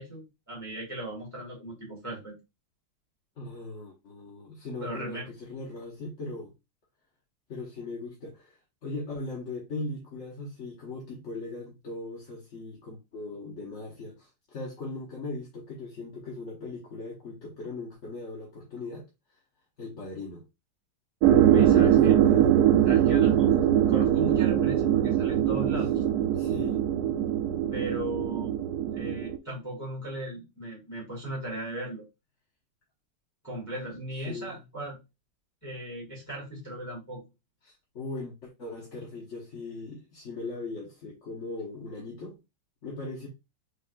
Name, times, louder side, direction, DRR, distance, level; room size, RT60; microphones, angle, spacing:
voice 1, 0.0-2.3 4.8-5.3 21.5-22.2 22.8-26.0 27.7-28.5 28.9-32.0 33.4-35.0 35.6-37.2, right 1 dB, 10° left, 1.7 m, -37 dB
voice 2, 3.4-6.5 7.5-19.1 19.8-20.4 21.5-22.7 26.3-26.8 34.2-34.6 37.6-42.4 42.8-43.3, left 3 dB, 45° left, 1.2 m, -39 dB
sound 1, 21.2-29.4, right 10 dB, 75° right, 0.9 m, -22 dB
5.2 x 3.7 x 2.3 m
omnidirectional pair, 2.1 m